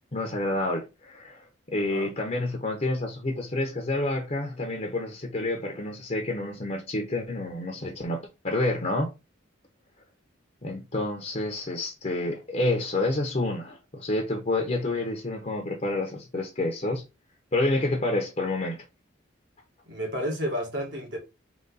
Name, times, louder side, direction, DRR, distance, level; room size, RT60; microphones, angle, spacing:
voice 1, 0.1-9.1 10.6-17.0 17.5-18.8, left 2 dB, 35° left, 0.7 m, -29 dB
voice 2, 1.8-2.1 19.9-21.2, equal, 60° right, 1.8 m, -31 dB
4.0 x 2.9 x 4.0 m
head